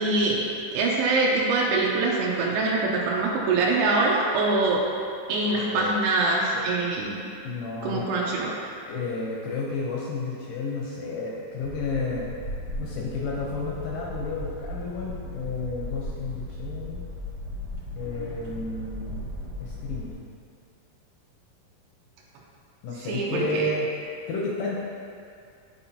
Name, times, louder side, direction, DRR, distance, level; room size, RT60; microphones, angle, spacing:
voice 1, 0.0-4.8 5.3-7.3 7.8-8.5 23.0-23.6, right 3 dB, 85° right, -4 dB, 2.5 m, -24 dB
voice 2, 5.6-5.9 7.4-8.0 8.9-12.3 12.8-17.1 18.0-19.3 19.6-20.2 22.8-23.9 24.3-24.8, left 3 dB, 80° left, -4 dB, 1.9 m, -31 dB
sound 1, 11.6-20.1, left 1 dB, 55° right, 1.9 m, -36 dB
11.0 x 4.4 x 2.8 m, 2.4 s
omnidirectional pair, 4.8 m